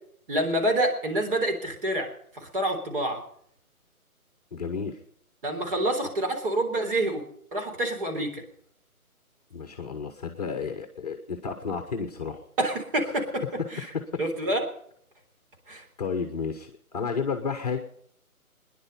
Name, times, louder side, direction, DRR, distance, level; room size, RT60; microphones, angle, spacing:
voice 1, 0.3-2.1 2.3-3.2 5.4-7.2 7.5-8.4 12.6-13.4 13.7-13.9 14.2-14.6 15.7-15.8, right 1 dB, 35° right, 3 dB, 3.7 m, -27 dB
voice 2, 4.5-5.0 9.5-12.4 13.9-14.0 16.0-17.8, left 5 dB, 25° left, 7 dB, 1.1 m, -32 dB
22.0 x 10.5 x 5.5 m, 0.65 s
figure-of-eight pair, 160°, 44 cm